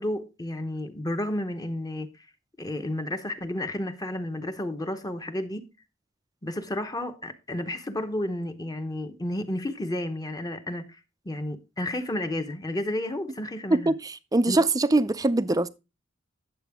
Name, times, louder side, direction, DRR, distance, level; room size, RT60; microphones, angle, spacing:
voice 1, 0.0-2.1 2.6-5.7 6.4-11.0 11.2-13.9 14.5-14.6, left 1 dB, 20° left, 0.8 m, -31 dB
voice 2, 13.7-15.7, right 2 dB, 20° right, 0.5 m, -23 dB
10.0 x 7.5 x 3.5 m
head